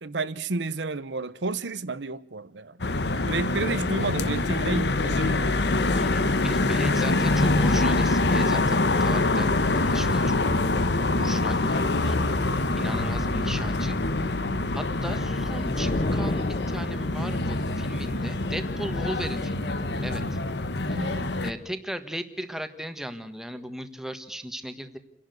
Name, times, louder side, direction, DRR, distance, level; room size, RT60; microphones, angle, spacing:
voice 1, 0.0-2.8 3.2-5.5 12.7-13.1 20.9-21.3, right 3 dB, 85° right, 0.9 m, -31 dB
sound 1, 2.8-21.5, left 2 dB, 70° left, 1.1 m, -25 dB
voice 2, 5.8-10.4 11.1-14.0 14.7-20.4 20.9-21.0 21.4-25.0, equal, 5° right, 1.4 m, -37 dB
roar hit, 15.7-17.3, left 2 dB, 40° left, 0.7 m, -30 dB
29.0 x 11.0 x 8.0 m
head